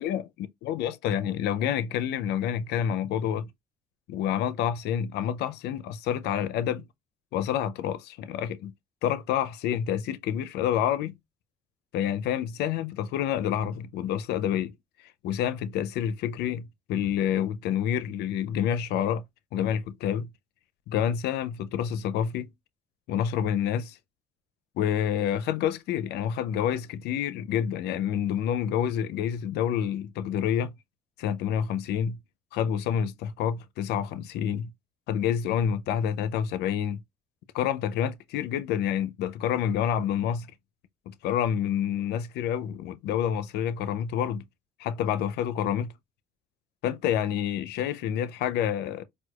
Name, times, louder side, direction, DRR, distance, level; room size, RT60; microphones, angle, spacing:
voice 1, 0.6-3.5 4.1-6.8 7.3-8.7 9.0-11.2 11.9-14.7 15.2-19.2 19.5-20.3 20.9-22.5 23.1-24.0 24.8-30.7 31.2-32.2 32.5-34.7 35.1-37.0 37.5-40.5 41.1-44.4 44.8-45.9 46.8-49.0, left 9 dB, 75° left, 0.4 m, -28 dB
4.5 x 2.2 x 2.3 m
cardioid pair, 110°, 17 cm